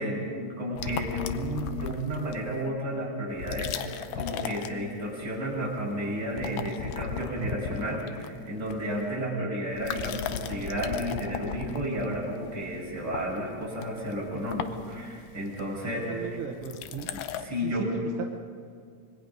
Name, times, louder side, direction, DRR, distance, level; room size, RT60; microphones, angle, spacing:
voice 1, 0.0-16.4 17.1-17.9, equal, 30° right, -4 dB, 6.6 m, -32 dB
sound 1, 0.8-2.6 3.3-5.3 5.6-6.0 6.2-9.2 9.7-17.4, left 9 dB, 85° left, 2.5 m, -37 dB
voice 2, 16.1-17.1 17.6-17.9 18.2-18.3, right 8 dB, 60° right, 2 dB, 1.5 m, -36 dB
26.0 x 22.5 x 5.4 m, 2.2 s
omnidirectional pair, 3.8 m